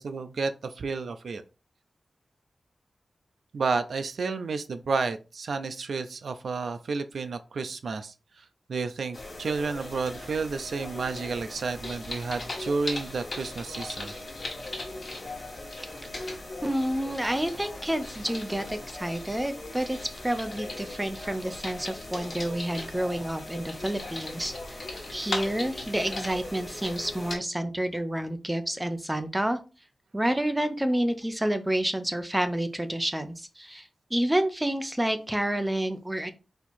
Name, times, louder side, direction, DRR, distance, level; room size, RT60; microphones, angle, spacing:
voice 1, 0.0-1.4 3.5-14.1, right 4 dB, 80° right, 9 dB, 0.4 m, -31 dB
sound 1, 9.1-27.4, left 2 dB, 50° left, 1.5 m, -38 dB
voice 2, 16.2-20.0 20.2-29.6 30.1-36.3, right 1 dB, 10° right, 9 dB, 0.5 m, -29 dB
4.4 x 2.8 x 4.3 m, 0.31 s
wide cardioid pair, 135°, 0 cm